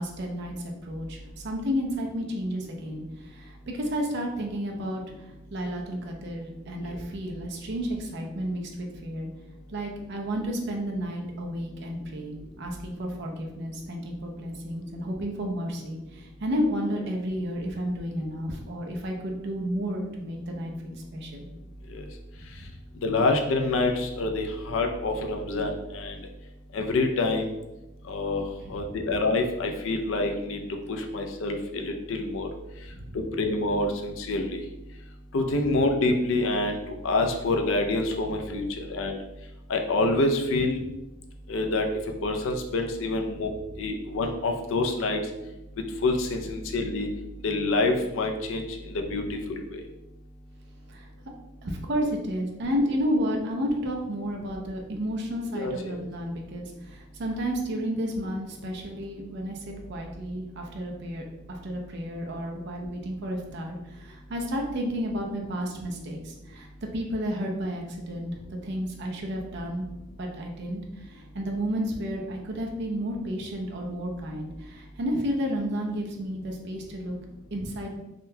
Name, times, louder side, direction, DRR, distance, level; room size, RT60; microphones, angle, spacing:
voice 1, 0.0-9.3 9.7-21.5 22.6-22.7 28.6-29.0 32.9-33.2 50.9-51.1 51.6-69.9 70.2-77.1 77.5-78.0, equal, 55° right, 1 dB, 0.5 m, -32 dB
voice 2, 23.0-26.1 26.7-27.5 28.1-28.4 28.7-30.6 30.9-32.5 33.1-34.6 35.3-39.2 39.7-40.8 41.5-41.9 42.2-43.5 43.8-45.2 46.0-47.1 47.4-48.6 49.1-49.4 49.7-49.8 55.5-56.0, left 2 dB, 65° left, 4 dB, 0.4 m, -26 dB
3.7 x 2.2 x 2.7 m, 0.96 s
head